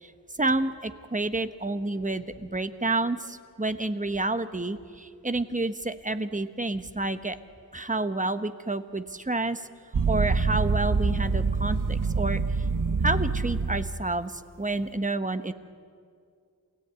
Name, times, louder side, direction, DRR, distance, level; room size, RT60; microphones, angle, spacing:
voice 1, 0.4-7.4 7.7-9.7 10.1-12.6 13.0-15.5, right 2 dB, 20° right, 10 dB, 1.1 m, -29 dB
sound 1, 9.9-14.0, right 4 dB, 60° right, 1.1 m, -26 dB
27.5 x 17.5 x 9.1 m, 2.2 s
wide cardioid pair, 70°, 36 cm